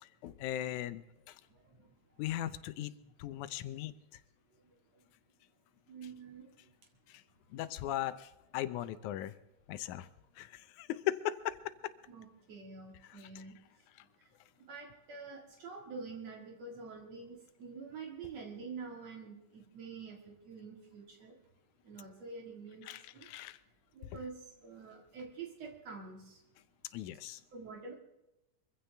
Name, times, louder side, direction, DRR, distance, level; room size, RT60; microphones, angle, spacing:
voice 1, 0.0-1.4 2.2-2.9 3.2-3.9 7.1-7.2 7.5-9.3 9.7-10.1 10.4-11.7 13.1-13.4 22.9-23.6 26.9-27.4, left 13 dB, 85° left, 14 dB, 2.2 m, -38 dB
voice 2, 5.9-6.5 12.1-13.6 14.6-21.3 21.8-22.9 23.1-23.3 23.9-26.4 27.5-27.9, right 4 dB, 60° right, 1 dB, 3.1 m, -47 dB
24.0 x 15.5 x 3.4 m, 0.92 s
omnidirectional pair, 3.4 m